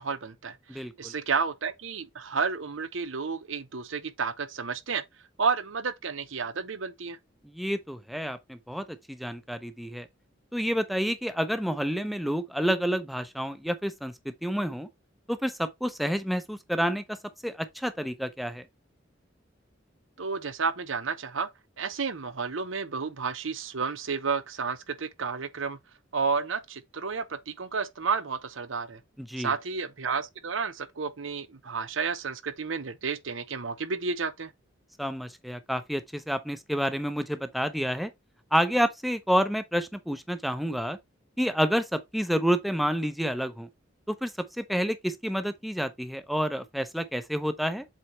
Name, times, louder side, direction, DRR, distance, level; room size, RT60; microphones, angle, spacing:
voice 1, 0.0-5.0 5.4-7.2 20.2-21.5 21.8-25.8 26.1-29.0 29.4-34.5, right 5 dB, 80° right, 0.9 m, -31 dB
voice 2, 0.7-1.1 7.4-10.1 10.5-14.9 15.3-17.2 17.4-18.7 29.2-29.5 35.0-38.1 38.5-41.0 41.4-43.7 44.1-47.9, equal, ahead, 0.6 m, -29 dB
7.6 x 4.1 x 3.1 m
head